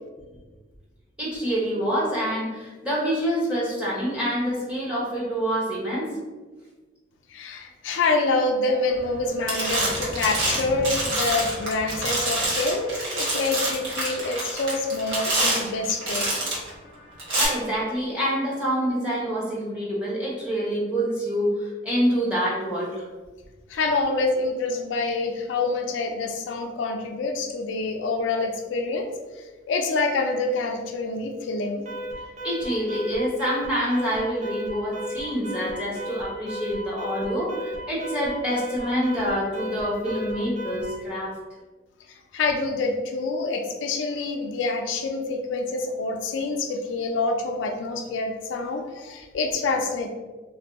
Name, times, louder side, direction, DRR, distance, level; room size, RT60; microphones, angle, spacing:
voice 1, 1.2-6.1 17.3-23.0 32.4-41.3, equal, 5° right, -7 dB, 0.9 m, -26 dB
voice 2, 7.3-16.4 23.7-29.1 29.3-31.9 42.1-50.1, left 3 dB, 80° left, 3 dB, 0.4 m, -26 dB
sound 1, 9.0-9.2 9.5-16.7 17.2-17.5, right 1 dB, 80° right, 1.1 m, -26 dB
Alarm, 31.9-41.1, equal, 40° right, 0.5 m, -35 dB
2.6 x 2.3 x 3.5 m, 1.3 s
head